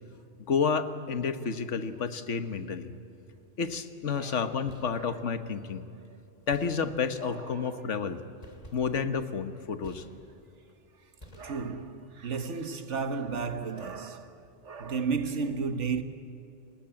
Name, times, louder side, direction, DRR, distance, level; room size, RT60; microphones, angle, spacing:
voice 1, 0.4-2.9 3.6-5.9 6.5-8.2 8.7-10.0, left 5 dB, 80° left, 1.5 m, -30 dB
voice 2, 4.1-4.4 5.0-5.2 7.2-7.8 11.3-16.0, right 5 dB, 75° right, 1.7 m, -33 dB
sound 1, 4.6-5.2 6.5-7.3 8.4-10.6 11.2-12.0, equal, 30° left, 2.8 m, -52 dB
30.0 x 20.5 x 8.9 m
omnidirectional pair, 1.2 m